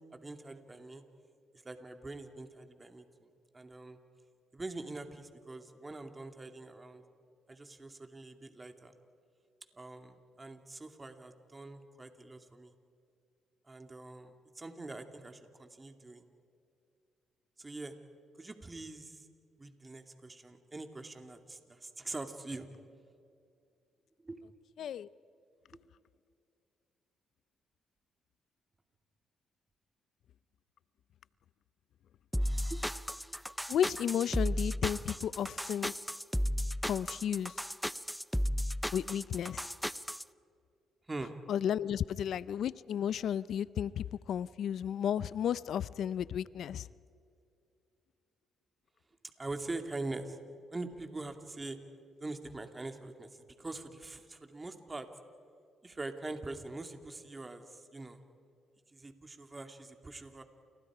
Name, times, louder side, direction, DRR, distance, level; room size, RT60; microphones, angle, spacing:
voice 1, 0.1-1.0 1.5-4.0 4.5-7.0 7.5-8.9 9.7-12.7 13.7-16.2 17.6-18.0 18.4-19.3 19.6-22.7 24.2-24.4 32.7-32.8 41.1-41.4 49.4-50.4 50.7-51.8 52.2-55.1 55.8-58.2 58.9-60.4, right 2 dB, 20° right, 6 dB, 2.4 m, -44 dB
voice 2, 24.8-25.1 33.7-35.9 36.8-37.6 38.9-39.7 41.5-46.9, left 9 dB, 70° left, 19 dB, 0.5 m, -33 dB
sound 1, 32.3-40.2, equal, ahead, 0.5 m, -34 dB
29.5 x 29.5 x 5.0 m, 2.4 s
cardioid pair, 90°, 0 cm